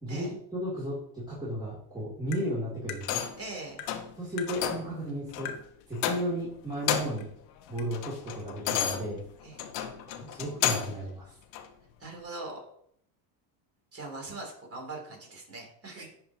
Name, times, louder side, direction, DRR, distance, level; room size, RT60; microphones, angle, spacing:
voice 1, 0.0-3.2 4.2-5.6 5.9-7.3 7.7-9.2 10.1-11.3, right 1 dB, 10° right, -9 dB, 2.6 m, -34 dB
Tap, 2.3-2.5 2.9-3.0 3.8-3.9 4.4-4.5 5.5-5.6 6.0-6.2 7.2-7.3 7.8-7.9, left 9 dB, 50° left, 1.1 m, -39 dB
sound 1, 3.0-3.5 3.9-4.1 4.5-4.9 5.3-5.5 6.0-6.5 6.7-7.3 7.7-11.0 11.5-11.7, left 10 dB, 80° left, 1.0 m, -32 dB
voice 2, 3.4-3.8 9.4-9.6 12.0-12.6 13.9-16.1, right 2 dB, 30° right, 0 dB, 2.9 m, -41 dB
10.5 x 4.7 x 2.8 m, 0.67 s
supercardioid pair, 115°, 48 cm